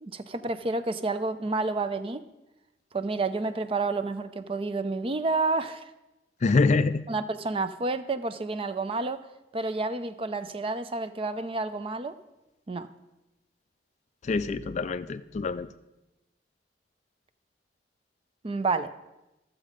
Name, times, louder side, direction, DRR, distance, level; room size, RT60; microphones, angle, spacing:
voice 1, 0.0-2.2 2.9-5.9 7.1-9.2 9.5-12.1 12.7-12.9 18.4-18.9, right 3 dB, 30° right, 11 dB, 0.5 m, -29 dB
voice 2, 6.4-7.1 14.2-15.7, left 3 dB, 40° left, 13 dB, 0.4 m, -25 dB
12.5 x 7.3 x 5.0 m, 0.96 s
head